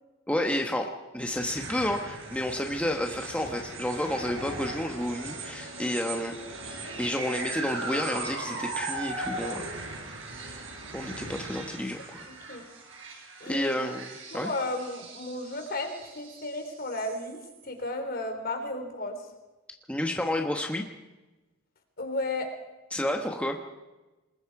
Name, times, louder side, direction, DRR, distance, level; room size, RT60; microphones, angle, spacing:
voice 1, 0.3-6.4 7.0-9.7 10.9-12.3 13.5-14.5 19.9-20.9 22.9-23.6, left 1 dB, 5° left, 3 dB, 1.2 m, -30 dB
sound 1, 1.2-17.6, right 3 dB, 70° right, 5.4 m, -39 dB
voice 2, 12.3-12.6 13.4-13.9 14.3-19.2 22.0-22.5, left 2 dB, 50° left, 5 dB, 3.7 m, -34 dB
27.0 x 20.5 x 4.9 m, 1.1 s
head